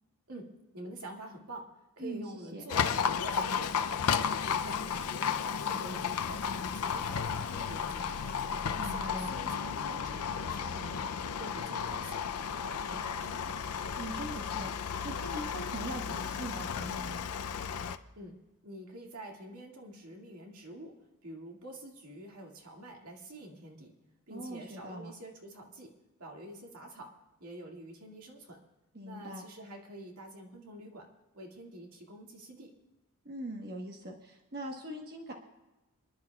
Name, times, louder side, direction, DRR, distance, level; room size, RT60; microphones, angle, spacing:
voice 1, 0.3-3.8 4.4-8.5 8.9-11.1 11.4-13.6 18.2-18.4 18.6-21.0 21.2-23.9 24.3-25.9 26.2-27.1 27.4-28.6 29.0-31.1 31.3-32.7, right 1 dB, 75° right, 0 dB, 2.2 m, -47 dB
Livestock farm animals working animals, 2.7-18.0, left 7 dB, 85° left, 0.6 m, -33 dB
voice 2, 8.8-9.3 14.0-17.2 24.3-25.1 28.9-29.4 33.2-35.3, right 1 dB, 45° right, 1 dB, 1.3 m, -41 dB
28.5 x 11.5 x 2.4 m, 1.1 s
head